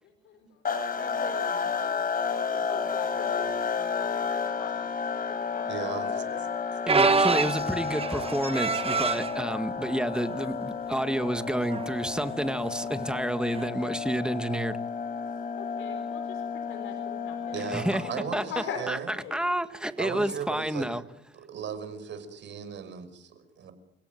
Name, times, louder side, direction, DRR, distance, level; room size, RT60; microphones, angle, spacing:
voice 1, 0.0-0.6 1.0-2.0 2.5-4.9 5.3-6.4 15.5-17.6 18.0-18.1 18.5-18.9 19.1-19.4, left 6 dB, 90° left, 6 dB, 4.3 m, -41 dB
sound 1, 0.6-18.5, left 6 dB, 45° left, 5.5 m, -32 dB
voice 2, 5.7-6.2 17.5-19.1 20.0-20.9 21.3-23.7, right 7 dB, 65° right, 9 dB, 6.0 m, -37 dB
voice 3, 6.9-14.8 17.7-18.0 18.3-18.4 18.9-21.0, right 1 dB, 5° right, 9 dB, 1.8 m, -29 dB
sound 2, 6.9-9.4 10.1-10.4 10.7-10.8 11.7-11.9 13.6-13.7, right 4 dB, 30° right, 1.3 m, -26 dB
30.0 x 17.0 x 9.3 m, 0.85 s
cardioid pair, 90°, 20 cm